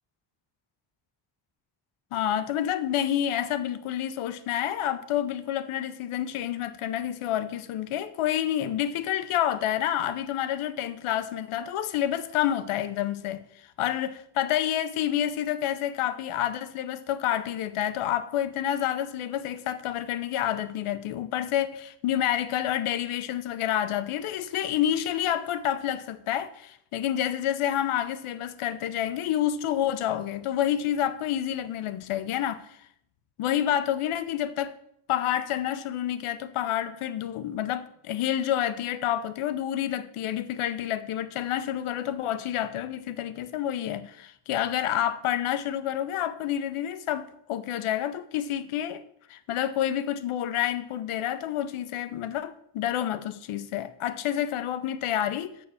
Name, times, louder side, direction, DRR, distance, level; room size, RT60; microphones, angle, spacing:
voice 1, 2.1-13.4 13.8-32.7 33.4-34.7 35.1-49.0 49.3-55.5, left 11 dB, 90° left, 0.8 m, -28 dB
7.4 x 4.6 x 7.0 m
wide cardioid pair, 170°, 49 cm